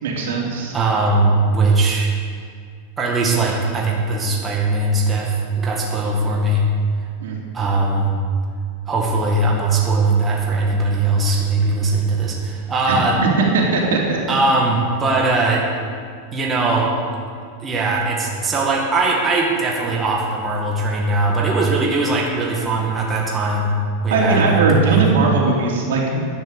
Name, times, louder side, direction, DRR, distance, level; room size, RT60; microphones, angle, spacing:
voice 1, 0.0-0.7 7.2-7.3 12.9-13.0 13.5-14.2 24.1-26.2, right 3 dB, 85° right, -2 dB, 3.2 m, -19 dB
voice 2, 0.7-2.1 3.0-6.6 7.5-8.2 8.8-13.2 14.3-15.6 16.3-16.9 17.6-23.7 24.0-25.0, right 3 dB, 15° right, -2 dB, 1.8 m, -20 dB
11.0 x 10.5 x 6.9 m, 2.1 s
supercardioid pair, 155°, 0 cm